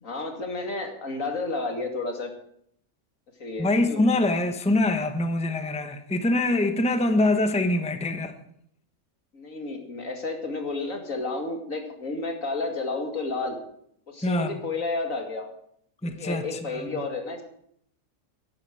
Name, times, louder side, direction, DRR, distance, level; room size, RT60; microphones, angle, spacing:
voice 1, 0.0-2.3 3.4-4.0 9.3-13.6 14.1-15.5 16.2-17.4, left 3 dB, 70° left, 2.8 m, -31 dB
voice 2, 3.6-8.3 14.2-14.6 16.0-16.8, left 2 dB, 5° left, 0.9 m, -24 dB
11.5 x 11.0 x 7.7 m
omnidirectional pair, 1.5 m